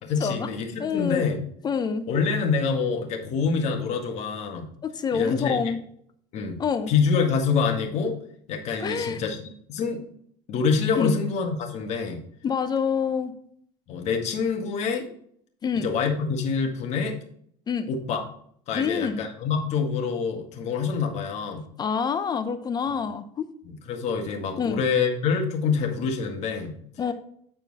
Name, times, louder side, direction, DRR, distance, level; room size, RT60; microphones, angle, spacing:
voice 1, 0.0-1.4 2.1-4.7 5.1-5.6 6.3-6.6 6.9-8.1 8.5-9.4 9.7-10.0 10.5-12.2 13.9-15.1 15.8-17.2 17.9-18.2 18.7-21.6 23.7-26.8, left 5 dB, 60° left, 4 dB, 1.7 m, -26 dB
voice 2, 0.8-1.2 1.6-2.1 4.8-5.8 6.6-6.9 8.8-9.2 11.0-11.1 12.4-13.3 15.6-15.9 17.7-17.9 18.7-19.2 21.8-23.5 24.6-24.8 27.0-27.1, left 6 dB, 30° left, 10 dB, 0.6 m, -26 dB
9.0 x 4.4 x 4.2 m, 0.65 s
cardioid pair, 115°, 13 cm